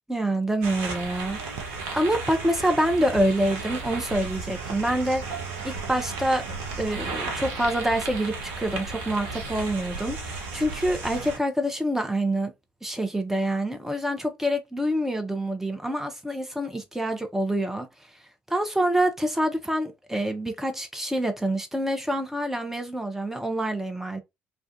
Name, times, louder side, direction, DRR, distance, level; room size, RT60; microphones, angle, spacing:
voice 1, 0.1-5.2 5.6-6.4 6.8-12.5 12.8-17.9 18.5-24.2, right 1 dB, 5° right, 0.6 m, -26 dB
sound 1, 0.6-11.4, right 4 dB, 65° right, 0.6 m, -34 dB
sound 2, 5.3-8.3, right 8 dB, 35° right, 1.2 m, -46 dB
2.3 x 2.2 x 2.5 m
figure-of-eight pair, 50°, 6 cm